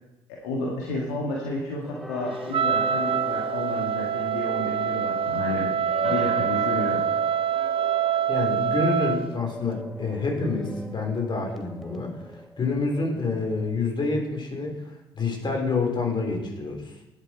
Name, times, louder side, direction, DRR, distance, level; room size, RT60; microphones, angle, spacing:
voice 1, 0.4-7.0, left 2 dB, 70° left, -2 dB, 1.8 m, -31 dB
sound 1, 1.8-13.8, right 1 dB, ahead, 1.1 m, -40 dB
Wind instrument woodwind instrument, 2.5-9.3, right 8 dB, 40° right, 0.6 m, -25 dB
voice 2, 8.3-12.1 12.6-14.7 15.1-16.9, left 3 dB, 35° left, 2 dB, 3.9 m, -27 dB
10.5 x 8.5 x 4.4 m, 0.94 s
figure-of-eight pair, 50°, 14 cm